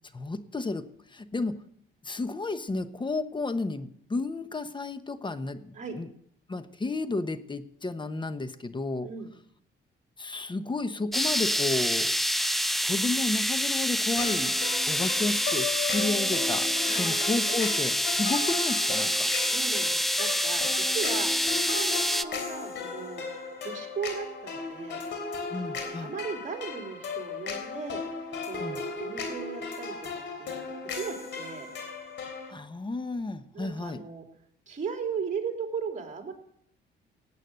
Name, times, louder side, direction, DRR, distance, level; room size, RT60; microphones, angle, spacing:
voice 1, 0.1-1.6 2.0-6.1 6.5-9.1 10.2-12.1 12.8-14.6 14.9-19.3 25.5-26.1 28.6-28.8 32.5-34.0, left 3 dB, 25° left, 12 dB, 1.1 m, -32 dB
sound 1, 11.1-22.2, equal, ahead, 0.6 m, -27 dB
sound 2, 14.2-32.5, left 4 dB, 65° left, 3.4 m, -36 dB
voice 2, 19.4-21.3 21.6-23.2 23.6-25.0 25.5-28.0 28.5-30.6 30.9-31.7 33.5-34.2 34.7-36.3, right 6 dB, 40° right, 3 dB, 3.2 m, -37 dB
18.0 x 8.5 x 6.4 m, 0.67 s
cardioid pair, 90°, 20 cm